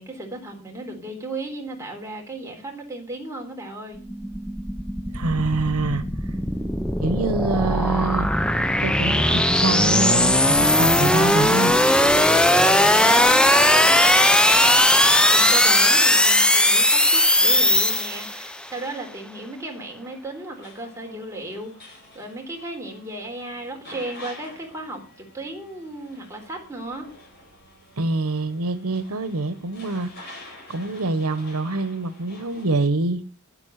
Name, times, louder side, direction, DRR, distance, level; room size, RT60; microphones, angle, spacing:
voice 1, 0.0-4.0 12.8-27.1, right 2 dB, 15° right, 1 dB, 3.8 m, -35 dB
sound 1, 4.0-18.6, left 1 dB, 5° left, 0.7 m, -18 dB
voice 2, 5.1-6.3 7.0-11.8 28.0-30.3 30.7-33.3, right 3 dB, 85° right, 12 dB, 1.1 m, -26 dB
sound 2, 20.5-32.7, left 1 dB, 45° left, 8.0 m, -47 dB
11.0 x 9.1 x 6.5 m, 0.36 s
head